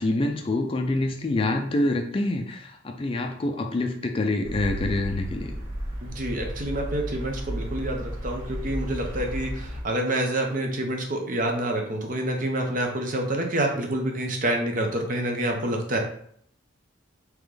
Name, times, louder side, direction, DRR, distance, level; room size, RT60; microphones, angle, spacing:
voice 1, 0.0-5.5, left 2 dB, 25° left, 4 dB, 0.3 m, -26 dB
sound 1, 4.4-9.8, equal, 75° right, 1.4 m, -33 dB
voice 2, 6.0-16.0, right 1 dB, 40° right, 3 dB, 0.7 m, -27 dB
3.7 x 2.9 x 3.3 m, 0.64 s
head